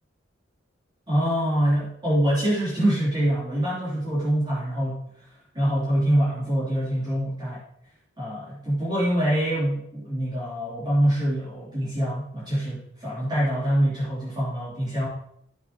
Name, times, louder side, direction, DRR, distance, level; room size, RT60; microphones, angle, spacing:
voice 1, 1.1-5.0 5.5-7.6 8.2-15.1, right 1 dB, 25° right, -10 dB, 3.6 m, -25 dB
11.0 x 8.6 x 3.0 m, 0.71 s
head